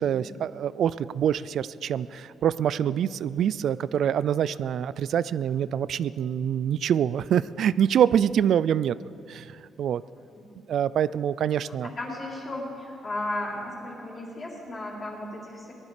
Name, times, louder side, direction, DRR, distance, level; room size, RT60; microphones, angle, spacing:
voice 1, 0.0-9.0 9.3-9.5 9.8-10.0 10.7-11.9, right 9 dB, 70° right, 18 dB, 0.3 m, -25 dB
voice 2, 11.7-15.7, left 1 dB, 35° left, -3 dB, 3.9 m, -35 dB
19.0 x 11.5 x 5.0 m, 2.6 s
cardioid pair, 90°, 0 cm